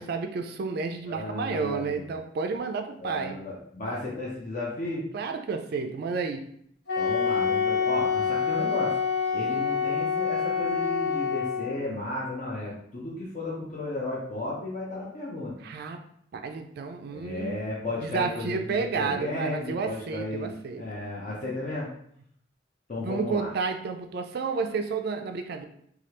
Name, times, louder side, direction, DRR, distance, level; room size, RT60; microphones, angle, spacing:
voice 1, 0.0-3.4 5.1-6.5 15.6-16.0 16.3-17.6 18.0-20.8 23.0-25.6, right 4 dB, 60° right, 6 dB, 0.3 m, -31 dB
voice 2, 1.1-2.2 3.0-5.1 7.0-9.0 9.3-15.5 17.1-20.5 20.7-21.9 22.9-23.5, left 2 dB, 45° left, -4 dB, 0.6 m, -34 dB
Wind instrument woodwind instrument, 6.9-11.8, left 6 dB, 70° left, 1.1 m, -26 dB
3.2 x 2.3 x 2.9 m, 0.67 s
head